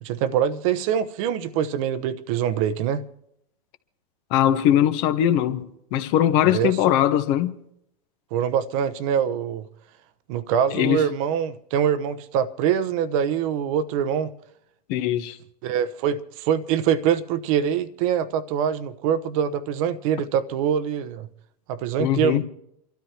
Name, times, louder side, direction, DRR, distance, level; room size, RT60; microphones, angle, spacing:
voice 1, 0.0-3.0 6.4-6.8 8.3-9.7 10.3-14.3 15.6-21.3 21.7-22.5, right 8 dB, 55° right, 1.0 m, -24 dB
voice 2, 4.3-7.5 10.7-11.1 14.9-15.4 22.0-22.5, left 11 dB, 50° left, 1.3 m, -21 dB
28.0 x 13.0 x 3.0 m
hypercardioid pair, 100°, 20 cm